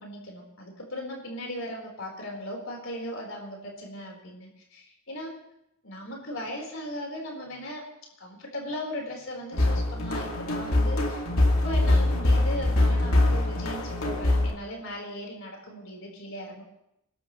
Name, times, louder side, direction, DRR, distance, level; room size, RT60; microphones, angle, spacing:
voice 1, 0.0-5.3 5.8-7.8 8.2-11.2 11.6-16.6, left 1 dB, 70° left, -1 dB, 4.4 m, -38 dB
sound 1, 9.5-14.5, left 1 dB, 90° left, 2.4 m, -23 dB
29.0 x 12.5 x 3.2 m, 0.81 s
head